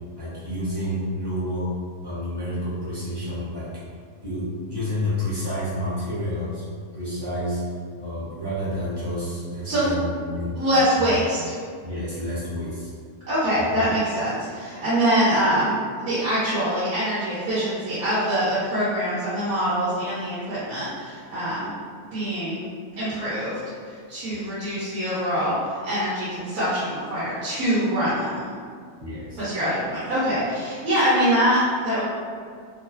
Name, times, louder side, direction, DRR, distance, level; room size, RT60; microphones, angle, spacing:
voice 1, 0.2-1.7 2.0-3.8 4.2-6.6 6.9-7.6 8.0-10.6 10.9-11.1 11.8-12.9 13.6-13.9 29.0-29.4, left 1 dB, 20° right, -11 dB, 0.7 m, -29 dB
voice 2, 10.5-11.5 13.2-21.7 22.1-22.7 23.0-23.6 23.9-28.4 29.4-32.0, equal, 75° right, -11 dB, 1.2 m, -24 dB
3.0 x 2.2 x 2.6 m, 2.1 s
omnidirectional pair, 1.6 m